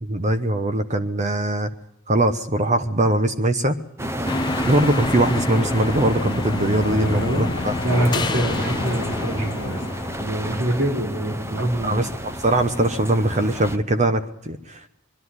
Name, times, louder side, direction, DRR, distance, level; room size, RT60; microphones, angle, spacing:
voice 1, 0.0-1.7 2.1-3.8 4.7-7.7 11.8-14.9, right 1 dB, 35° right, 9 dB, 1.1 m, -21 dB
sound 1, 4.0-13.8, equal, 15° right, 1.0 m, -31 dB
sound 2, 4.3-10.5, left 2 dB, 20° left, 0.8 m, -29 dB
sound 3, 4.7-10.1, left 3 dB, 75° left, 0.8 m, -35 dB
voice 2, 6.9-9.8 10.2-12.0, right 1 dB, 65° right, 3 dB, 3.3 m, -25 dB
22.5 x 13.0 x 9.7 m, 0.78 s
head